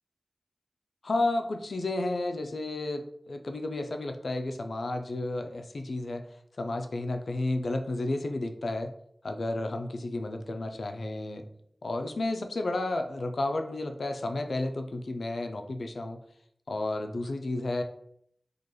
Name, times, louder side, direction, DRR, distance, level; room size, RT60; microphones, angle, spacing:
voice 1, 1.0-6.3 6.6-8.9 9.2-11.4 11.8-16.2 16.7-17.8, left 2 dB, 90° left, 6 dB, 0.4 m, -32 dB
4.9 x 2.3 x 3.0 m, 0.70 s
wide cardioid pair, 55°, 0 cm